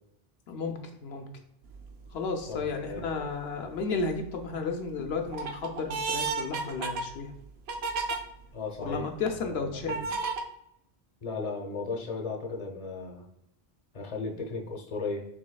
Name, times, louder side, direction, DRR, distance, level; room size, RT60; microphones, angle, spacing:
voice 1, 0.5-1.3 2.1-7.3 8.9-10.0 14.4-14.5, left 4 dB, 80° left, 4 dB, 0.9 m, -33 dB
sound 1, 1.7-2.1 2.7-3.3 3.8-4.4 4.9-8.2 8.8-8.9 9.9-10.4, right 4 dB, 80° right, 0.9 m, -33 dB
voice 2, 2.5-3.3 8.5-9.1 9.4-10.1 11.2-13.3 13.9-15.3, left 3 dB, 40° left, 1 dB, 0.9 m, -36 dB
6.2 x 3.4 x 2.2 m, 0.81 s
omnidirectional pair, 1.1 m